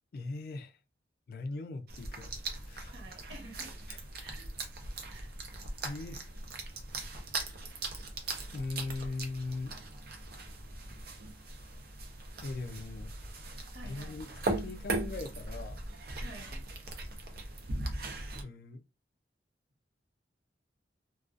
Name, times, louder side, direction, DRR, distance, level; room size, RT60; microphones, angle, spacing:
voice 1, 0.1-0.8 1.3-2.3 2.7-2.9 3.9-4.0 5.8-6.2 8.5-9.7 12.4-13.1 13.8-15.8 18.4-18.8, left 3 dB, 55° left, 0.4 m, -39 dB
sound 1, 1.9-18.4, right 2 dB, 55° right, 0.5 m, -39 dB
voice 2, 2.9-3.8 4.2-4.5 5.1-5.3 9.0-9.2 13.7-14.2 16.2-16.6, right 2 dB, 75° right, 1.2 m, -50 dB
2.4 x 2.3 x 2.4 m
head